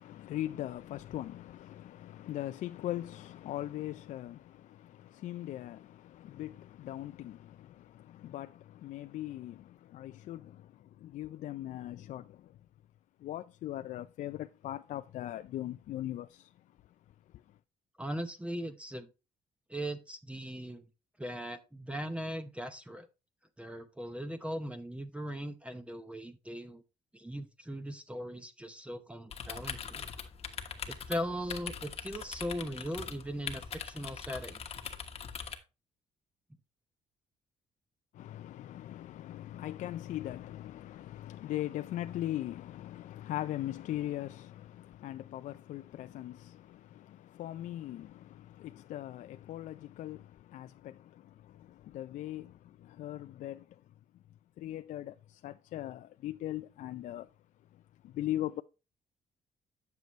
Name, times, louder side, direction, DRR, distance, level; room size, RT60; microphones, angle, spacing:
voice 1, 0.0-12.6 13.2-16.7 17.3-17.6 38.1-53.8 54.6-57.3 57.7-58.6, left 13 dB, 70° left, 0.4 m, -40 dB
voice 2, 18.0-19.1 19.7-20.8 21.2-23.1 23.6-26.8 27.1-30.1 30.9-34.6, equal, 10° right, 0.8 m, -39 dB
sound 1, 29.3-35.6, left 7 dB, 50° left, 1.2 m, -42 dB
9.3 x 6.8 x 3.1 m
cardioid pair, 120°, 14 cm